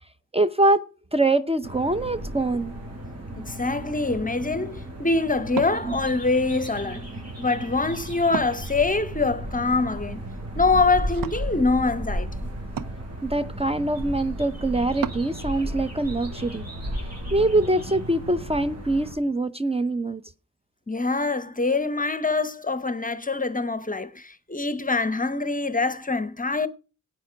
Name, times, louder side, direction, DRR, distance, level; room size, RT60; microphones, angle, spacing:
voice 1, 0.3-0.8 1.1-2.7 13.2-16.7 17.3-20.2, right 2 dB, 20° right, 0.7 m, -23 dB
sound 1, 1.6-19.1, right 1 dB, 50° right, 6.1 m, -34 dB
voice 2, 3.4-7.0 7.4-10.2 10.6-12.3 20.9-26.7, left 3 dB, 25° left, 0.9 m, -24 dB
Wood, 10.5-15.3, right 7 dB, 90° right, 0.7 m, -40 dB
14.5 x 9.0 x 5.1 m
cardioid pair, 65°, 32 cm